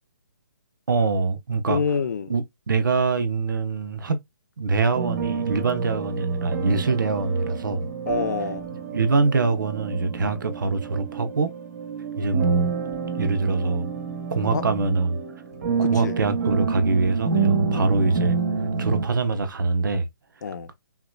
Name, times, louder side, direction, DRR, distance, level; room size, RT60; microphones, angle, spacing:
voice 1, 0.9-1.8 2.3-4.2 4.6-7.9 8.9-11.5 12.2-12.7 13.1-13.9 14.3-15.2 15.8-18.4 18.8-20.1, right 4 dB, 65° right, 1.0 m, -24 dB
voice 2, 1.7-2.3 8.1-8.7 14.5-14.6 15.8-16.2 17.7-17.9 20.4-20.7, left 6 dB, 55° left, 0.8 m, -27 dB
sound 1, 4.9-19.1, right 5 dB, 45° right, 1.3 m, -28 dB
5.6 x 3.1 x 2.3 m
figure-of-eight pair, 140°, 11 cm